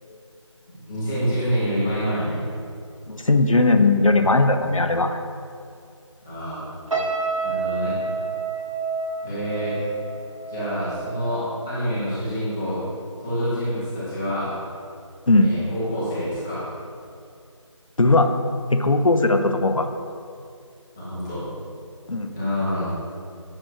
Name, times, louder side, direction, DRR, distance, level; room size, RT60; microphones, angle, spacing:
voice 1, 0.7-2.4 6.2-6.7 7.4-8.0 9.2-9.8 10.5-12.8 13.2-14.5 15.4-16.7 21.0-21.4 22.3-22.9, equal, 5° left, -12 dB, 0.7 m, -27 dB
voice 2, 3.1-5.2 15.3-15.5 18.0-18.3 18.7-19.9 22.1-22.3, left 2 dB, 90° left, 7 dB, 0.7 m, -18 dB
sound 1, 6.9-12.2 12.5-12.8, right 4 dB, 85° right, 1.1 m, -30 dB
8.9 x 6.2 x 3.1 m, 2.4 s
figure-of-eight pair, 165°, 17 cm